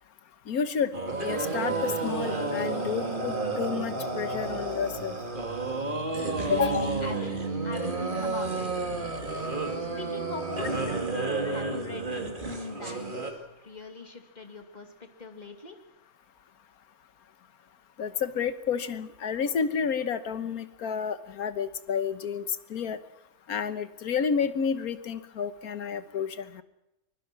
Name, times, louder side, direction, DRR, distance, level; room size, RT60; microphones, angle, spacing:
voice 1, 0.5-0.9 1.2-5.2 6.5-6.9 18.0-23.0 23.5-26.6, left 7 dB, 85° left, 12 dB, 1.6 m, -30 dB
sound 1, 0.9-13.3, right 3 dB, 35° right, 2.4 m, -31 dB
voice 2, 6.6-8.7 9.3-15.8, left 2 dB, 30° left, 5 dB, 2.5 m, -41 dB
23.5 x 21.5 x 6.1 m, 0.89 s
omnidirectional pair, 1.5 m